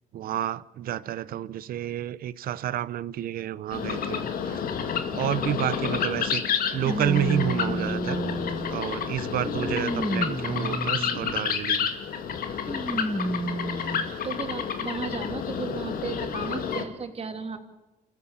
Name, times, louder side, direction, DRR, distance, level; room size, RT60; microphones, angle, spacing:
voice 1, 0.1-4.6 5.1-6.4 6.7-8.2 8.7-11.9, right 12 dB, 75° right, 0.8 m, -30 dB
sound 1, 3.7-16.8, left 7 dB, 70° left, 2.3 m, -30 dB
sound 2, 5.6-5.7 6.8-8.9 9.4-11.5 12.7-14.1 14.8-14.9 16.0-16.1, right 1 dB, 5° right, 1.0 m, -31 dB
voice 2, 13.9-17.6, right 5 dB, 40° right, 2.8 m, -35 dB
29.0 x 14.5 x 7.4 m
cardioid pair, 90°, 15 cm